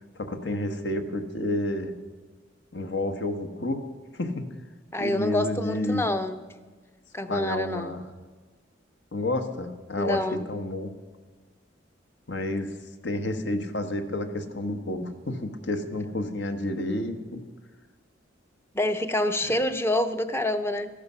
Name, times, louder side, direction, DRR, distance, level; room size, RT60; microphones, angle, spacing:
voice 1, 0.1-1.9 2.7-3.8 4.1-4.5 5.0-6.1 7.3-8.0 9.1-10.9 12.3-12.7 13.0-17.4 19.5-19.6, left 1 dB, 65° left, 7 dB, 1.2 m, -30 dB
voice 2, 4.9-6.4 7.1-7.9 10.0-10.5 18.7-20.9, left 1 dB, 15° left, 9 dB, 0.6 m, -27 dB
14.0 x 11.5 x 5.7 m, 1.4 s
head